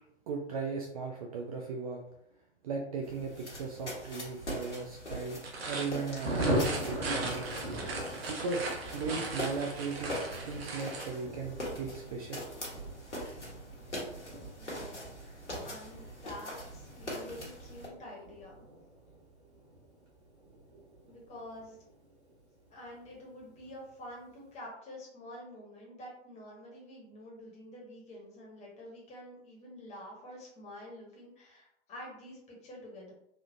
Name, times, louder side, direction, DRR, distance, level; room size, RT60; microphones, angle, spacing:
voice 1, 0.3-2.0 2.6-5.4 5.7-7.5 8.3-8.7 8.9-10.2 10.4-12.4, right 4 dB, 35° right, 0 dB, 0.4 m, -37 dB
sound 1, 3.0-17.9, equal, 85° left, 1.2 m, -42 dB
sound 2, 5.3-11.1, right 3 dB, 60° right, 0.9 m, -39 dB
Thunder, 6.2-22.3 22.6-22.7 23.0-23.1 23.4-23.8, right 1 dB, 90° right, 1.3 m, -40 dB
voice 2, 14.5-18.6 21.0-21.8 22.7-33.1, left 1 dB, 20° left, -3 dB, 1.0 m, -48 dB
3.5 x 2.4 x 2.6 m, 0.75 s
figure-of-eight pair, 110°, 34 cm